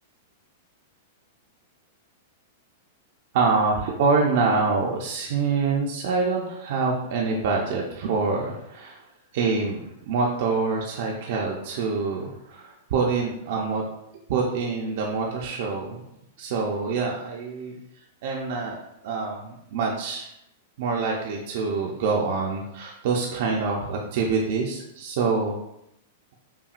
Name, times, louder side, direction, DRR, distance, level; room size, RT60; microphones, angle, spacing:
voice 1, 3.3-9.0 9.3-13.8 14.3-16.0 16.4-17.8 18.2-18.8 19.0-20.3 20.8-25.6, right 4 dB, 60° right, -1 dB, 0.6 m, -25 dB
5.6 x 2.3 x 2.5 m, 0.82 s
hypercardioid pair, 140°, 0 cm